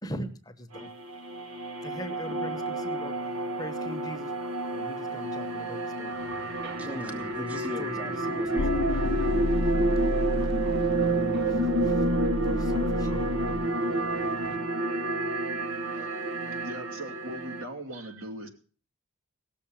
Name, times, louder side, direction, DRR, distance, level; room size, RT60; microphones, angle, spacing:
voice 1, 0.0-0.9 1.8-3.2 3.6-4.3 4.7-6.2 6.9-8.8 9.6-10.1 10.4-10.6 11.5-12.1 12.4-13.3, equal, 20° left, 7 dB, 1.0 m, -41 dB
sound 1, 0.7-17.6, right 2 dB, 90° right, 1.1 m, -29 dB
sound 2, 6.1-14.6, right 2 dB, 50° right, 1.2 m, -46 dB
voice 2, 6.6-9.5, left 1 dB, 5° right, 7 dB, 0.8 m, -41 dB
sound 3, 8.6-13.7, left 2 dB, 70° left, 0.6 m, -31 dB
voice 3, 16.6-18.5, right 1 dB, 65° right, 4 dB, 2.5 m, -40 dB
17.0 x 7.0 x 7.3 m, 0.39 s
head